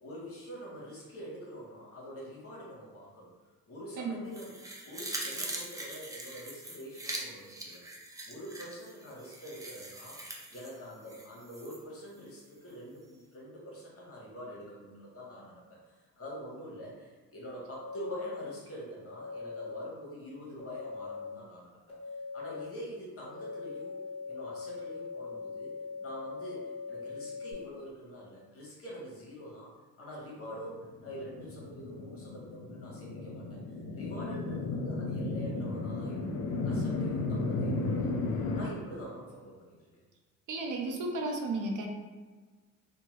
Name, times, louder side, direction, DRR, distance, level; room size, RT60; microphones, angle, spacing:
voice 1, 0.0-3.3 3.7-4.5 4.8-7.8 8.2-21.8 22.3-24.0 24.2-25.7 26.0-33.6 33.9-38.2 38.5-39.8, equal, 40° left, -4 dB, 1.1 m, -45 dB
voice 2, 4.0-4.3 40.5-41.9, right 2 dB, 65° right, 1 dB, 0.7 m, -34 dB
sound 1, 4.3-11.8 12.2-12.3, right 1 dB, 10° right, 0.4 m, -42 dB
sound 2, 17.7-18.4 19.1-19.8 20.6-21.3 21.9-22.6 23.2-27.5, left 4 dB, 15° left, 1.1 m, -41 dB
sound 3, 30.9-38.6, left 3 dB, 90° left, 0.5 m, -34 dB
2.8 x 2.2 x 3.0 m, 1.4 s
cardioid pair, 90°, 34 cm